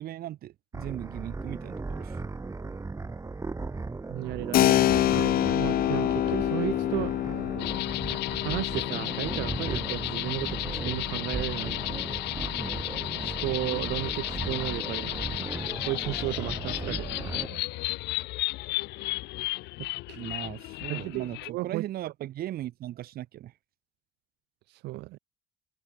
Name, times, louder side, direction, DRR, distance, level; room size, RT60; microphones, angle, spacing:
voice 1, 0.0-2.2 20.1-23.5, right 13 dB, 65° right, 1.2 m, -38 dB
sound 1, 0.7-17.5, right 3 dB, 20° right, 1.9 m, -37 dB
voice 2, 4.1-7.1 8.3-12.0 13.2-15.5 15.8-17.6 19.8-20.2 20.9-22.1 24.7-25.2, right 20 dB, 85° right, 1.0 m, -34 dB
Keyboard (musical), 4.5-12.9, left 13 dB, 60° left, 0.8 m, -28 dB
sound 2, 7.6-21.5, left 19 dB, 85° left, 2.3 m, -34 dB
cardioid pair, 110°, 17 cm